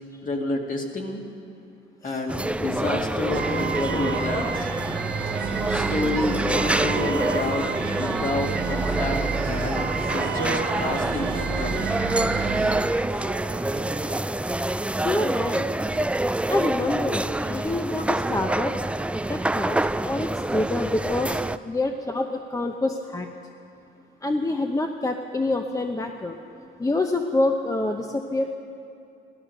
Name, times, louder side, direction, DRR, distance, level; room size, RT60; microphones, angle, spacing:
voice 1, 0.2-1.2 2.0-4.7 5.7-12.0, left 2 dB, 40° left, 1 dB, 2.2 m, -29 dB
sound 1, 2.3-21.6, right 1 dB, 5° right, 0.3 m, -27 dB
sound 2, 3.3-12.8, right 6 dB, 55° right, 1.2 m, -29 dB
sound 3, 5.2-14.2, right 6 dB, 75° right, 1.3 m, -41 dB
voice 2, 15.0-15.7 16.5-18.7 19.3-21.4 21.6-23.3 24.2-26.4 26.8-28.6, left 2 dB, 15° left, 4 dB, 0.8 m, -26 dB
16.5 x 13.0 x 6.5 m, 2.6 s
cardioid pair, 90°, 20 cm